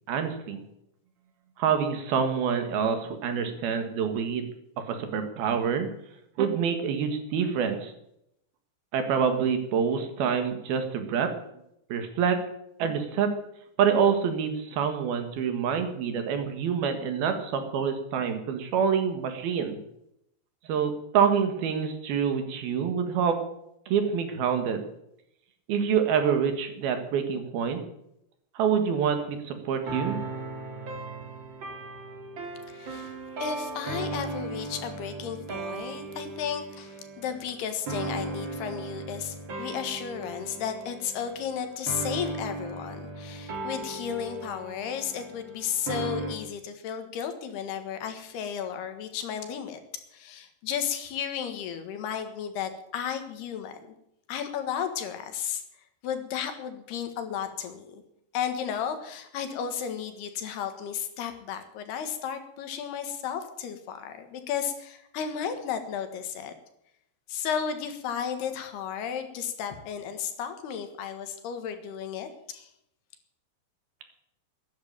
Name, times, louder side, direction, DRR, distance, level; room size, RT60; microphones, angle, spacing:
voice 1, 0.1-0.6 1.6-4.4 4.9-5.9 6.4-7.9 8.9-11.3 11.9-12.4 12.8-13.3 13.8-19.8 20.7-23.4 23.9-24.8 25.7-27.8 28.6-30.2, right 7 dB, 70° right, 7 dB, 3.4 m, -26 dB
sound 1, 28.9-46.4, right 2 dB, 40° right, 2.1 m, -37 dB
voice 2, 32.7-33.2 33.4-49.8 50.1-53.8 54.3-55.6 56.0-58.0 58.3-66.5 67.3-72.7, left 8 dB, 75° left, 8 dB, 3.6 m, -33 dB
13.0 x 10.0 x 8.8 m, 0.78 s
omnidirectional pair, 4.7 m